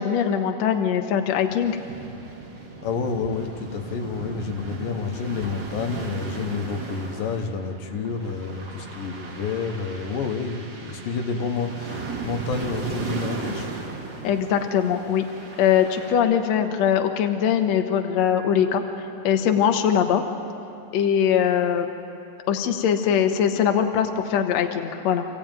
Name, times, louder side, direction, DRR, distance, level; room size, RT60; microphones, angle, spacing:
voice 1, 0.0-1.8 14.2-15.2 15.6-18.8 19.2-20.2 20.9-21.9 22.5-25.3, left 8 dB, 65° left, 5 dB, 2.1 m, -21 dB
sound 1, 1.5-16.1, right 4 dB, 35° right, 2.7 m, -36 dB
voice 2, 2.8-13.7, left 5 dB, 80° left, 5 dB, 2.9 m, -29 dB
28.0 x 15.5 x 9.0 m, 2.7 s
omnidirectional pair, 3.9 m